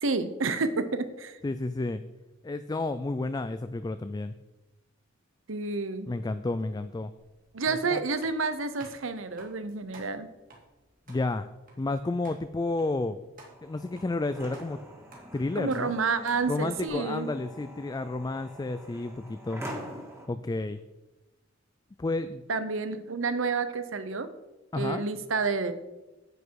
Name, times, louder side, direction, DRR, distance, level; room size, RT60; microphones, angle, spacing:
voice 1, 0.0-1.4 5.5-6.1 7.5-10.3 15.5-17.3 22.5-24.3 24.7-25.7, right 4 dB, 75° right, 11 dB, 0.9 m, -29 dB
voice 2, 1.4-2.0 2.4-4.3 6.1-7.1 7.9-8.0 11.1-11.5 11.8-13.2 13.6-14.8 15.3-16.0 16.5-19.6 20.3-20.8 22.0-22.4 24.7-25.0, left 2 dB, 20° left, 11 dB, 0.3 m, -31 dB
sound 1, 7.2-16.9, right 1 dB, 45° right, 2.7 m, -55 dB
sound 2, 13.5-20.3, equal, 15° right, 1.9 m, -45 dB
9.9 x 8.3 x 4.7 m, 1.0 s
head